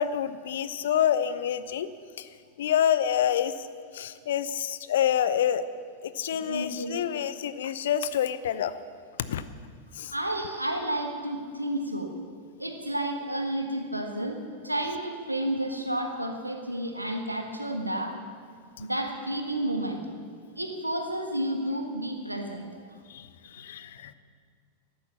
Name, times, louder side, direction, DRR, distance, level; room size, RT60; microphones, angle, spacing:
voice 1, 0.0-1.9 2.2-2.3 2.6-3.5 3.9-5.6 6.0-8.7 9.3-9.4 10.0-10.1 18.8-18.9 23.1-24.1, left 9 dB, 60° left, 14 dB, 0.7 m, -27 dB
voice 2, 6.5-7.0 10.1-12.1 12.6-14.4 14.6-18.2 18.8-20.0 20.5-22.7, right 1 dB, 85° right, 4 dB, 1.5 m, -31 dB
13.5 x 11.0 x 7.3 m, 2.1 s
figure-of-eight pair, 90°, 0 cm